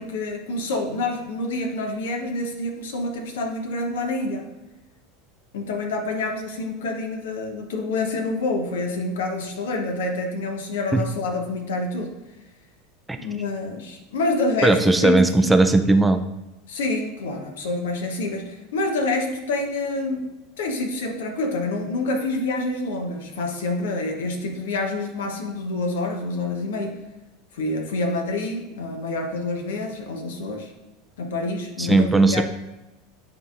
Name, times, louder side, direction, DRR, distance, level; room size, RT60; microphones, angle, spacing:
voice 1, 0.0-4.5 5.5-12.1 13.2-15.5 16.7-20.3 20.6-27.0 27.5-30.7 31.2-32.4, left 2 dB, 75° left, 3 dB, 1.0 m, -27 dB
voice 2, 14.6-16.2 31.8-32.4, right 2 dB, 10° right, 8 dB, 0.4 m, -17 dB
10.0 x 3.8 x 2.5 m, 0.99 s
hypercardioid pair, 85°, 0 cm